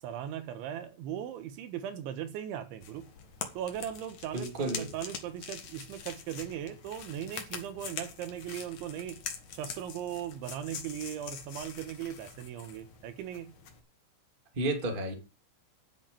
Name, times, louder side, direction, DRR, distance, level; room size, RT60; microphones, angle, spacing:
voice 1, 0.0-3.1 3.6-9.2 9.5-13.5, right 10 dB, 80° right, 3.6 m, -38 dB
sound 1, 2.8-13.8, left 7 dB, 55° left, 2.4 m, -44 dB
voice 2, 4.3-4.9 14.5-15.1, right 2 dB, 20° right, 1.5 m, -31 dB
10.5 x 7.4 x 9.1 m
omnidirectional pair, 5.4 m